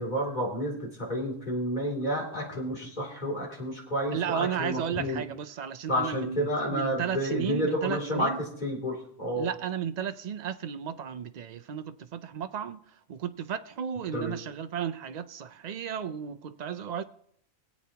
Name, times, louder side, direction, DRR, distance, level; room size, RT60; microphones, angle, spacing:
voice 1, 0.0-5.2 5.9-8.3 8.6-9.5 14.1-14.3, equal, 35° left, 3.0 m, -30 dB
voice 2, 4.1-8.4 9.4-12.8 13.1-17.0, right 8 dB, 80° right, 0.3 m, -34 dB
24.0 x 8.2 x 2.8 m
omnidirectional pair, 1.4 m